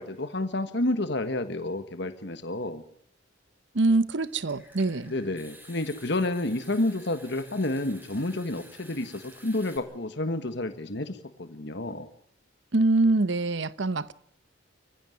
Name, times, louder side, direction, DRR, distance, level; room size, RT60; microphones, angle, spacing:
voice 1, 0.0-2.8 5.1-12.1, left 2 dB, 60° left, 1.5 m, -30 dB
voice 2, 3.7-5.1 12.7-14.1, right 2 dB, 60° right, 0.8 m, -24 dB
Water tap faucet / Sink (filling or washing) / Trickle dribble, 4.2-9.8, equal, 10° right, 4.6 m, -51 dB
25.5 x 15.0 x 9.7 m
head